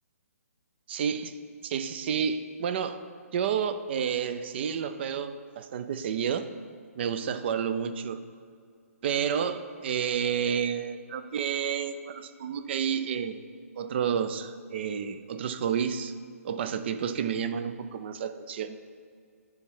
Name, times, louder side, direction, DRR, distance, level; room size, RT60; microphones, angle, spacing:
voice 1, 0.9-1.3 1.6-3.0 3.3-6.5 7.0-8.2 9.0-13.4 13.8-16.1 16.4-18.8, right 7 dB, 45° right, 11 dB, 0.5 m, -30 dB
10.0 x 3.5 x 5.4 m, 2.2 s
hypercardioid pair, 145°, 8 cm